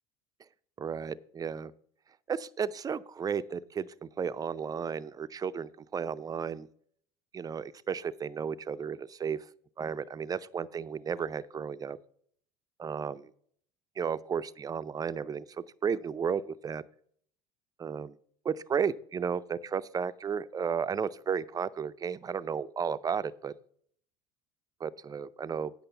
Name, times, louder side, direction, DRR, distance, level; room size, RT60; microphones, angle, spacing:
voice 1, 0.8-1.7 2.3-6.7 7.3-9.5 9.8-12.0 12.8-13.3 14.0-15.4 15.8-16.8 17.8-18.2 18.4-23.5 24.8-25.7, right 6 dB, 25° right, 15 dB, 0.5 m, -33 dB
8.9 x 5.6 x 6.9 m, 0.62 s
hypercardioid pair, 80°, 15 cm